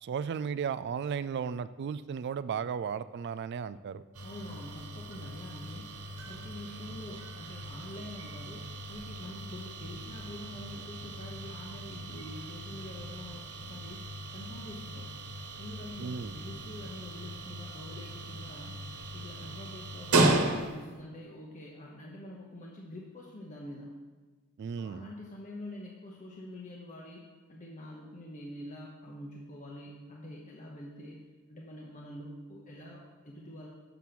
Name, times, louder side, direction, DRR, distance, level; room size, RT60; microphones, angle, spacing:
voice 1, 0.0-4.0 16.0-16.4 24.6-25.1, right 6 dB, 50° right, 15 dB, 0.3 m, -35 dB
sound 1, 4.1-21.0, right 2 dB, 80° right, 1.1 m, -36 dB
voice 2, 4.2-15.2 15.6-23.9 24.7-31.2 31.5-33.7, left 1 dB, 35° left, -2 dB, 0.9 m, -46 dB
6.9 x 6.2 x 5.9 m, 1.3 s
head